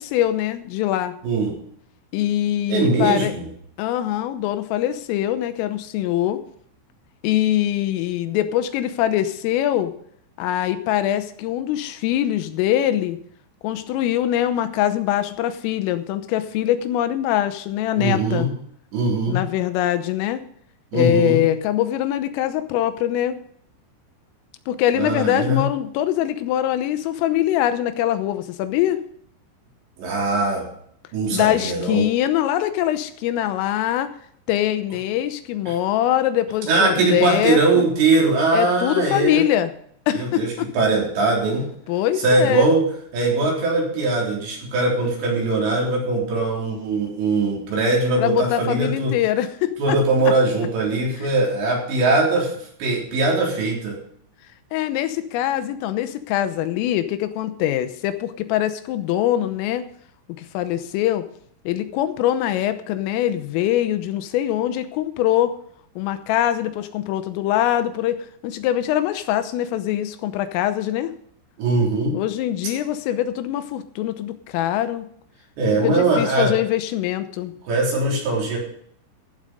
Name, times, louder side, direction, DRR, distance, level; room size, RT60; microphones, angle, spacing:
voice 1, 0.0-1.1 2.1-3.3 3.8-6.4 7.2-9.9 10.4-13.2 13.6-18.5 19.3-20.4 20.9-23.4 24.7-29.0 31.3-34.1 34.5-37.9 38.5-39.7 40.1-40.7 41.9-42.7 48.2-50.0 51.2-51.3 54.7-59.9 60.4-61.3 61.7-65.6 66.0-68.2 68.4-71.1 72.1-75.1 75.8-77.5, left 12 dB, 90° left, 11 dB, 3.5 m, -23 dB
voice 2, 2.7-3.5 18.0-18.5 18.9-19.4 20.9-21.4 25.0-25.7 30.0-30.7 31.1-32.1 35.7-35.8 36.7-39.4 40.1-41.7 42.2-42.9 43.1-49.1 49.8-54.0 71.6-72.2 75.6-76.5 77.7-78.6, right 2 dB, 60° right, -2 dB, 5.6 m, -21 dB
15.5 x 7.7 x 5.1 m, 0.65 s
omnidirectional pair, 5.8 m